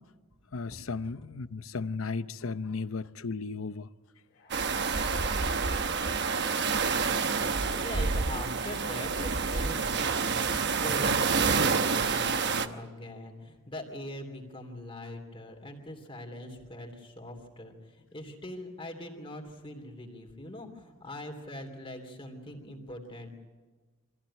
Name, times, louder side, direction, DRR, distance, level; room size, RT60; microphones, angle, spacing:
voice 1, 0.5-3.9, left 4 dB, 70° left, 0.7 m, -35 dB
sound 1, 4.3-8.2, left 5 dB, 50° left, 3.1 m, -50 dB
sound 2, 4.5-12.7, right 5 dB, 55° right, 1.0 m, -28 dB
voice 2, 7.7-23.4, left 1 dB, 25° left, 3.0 m, -42 dB
25.0 x 15.0 x 9.9 m
head